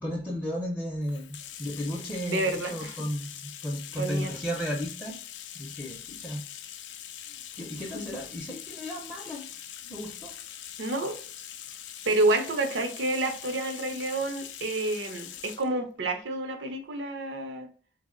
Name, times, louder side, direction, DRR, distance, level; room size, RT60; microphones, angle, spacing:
voice 1, 0.0-3.4 3.6-5.2 5.5-6.4 7.5-9.4 9.8-10.3, equal, 10° left, -3 dB, 0.4 m, -34 dB
Bathtub (filling or washing), 1.0-15.7, left 10 dB, 80° left, 0.3 m, -43 dB
voice 2, 2.2-3.0 4.0-4.3 7.9-8.1 10.8-11.2 12.1-17.7, right 2 dB, 85° right, 5 dB, 0.6 m, -29 dB
2.8 x 2.0 x 3.6 m, 0.42 s
head